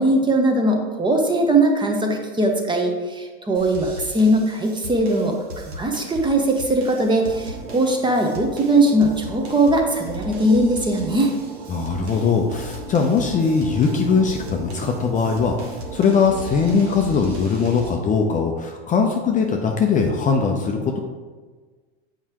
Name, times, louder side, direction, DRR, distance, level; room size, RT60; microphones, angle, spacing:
voice 1, 0.0-11.3, right 1 dB, 15° right, 3 dB, 0.9 m, -20 dB
sound 1, 3.5-17.9, left 1 dB, 85° right, 1.2 m, -38 dB
sound 2, 7.2-17.0, right 6 dB, 55° right, 0.8 m, -38 dB
voice 2, 11.7-21.0, left 5 dB, 25° left, 2 dB, 0.5 m, -20 dB
7.2 x 4.8 x 2.9 m, 1.4 s
hypercardioid pair, 100°, 31 cm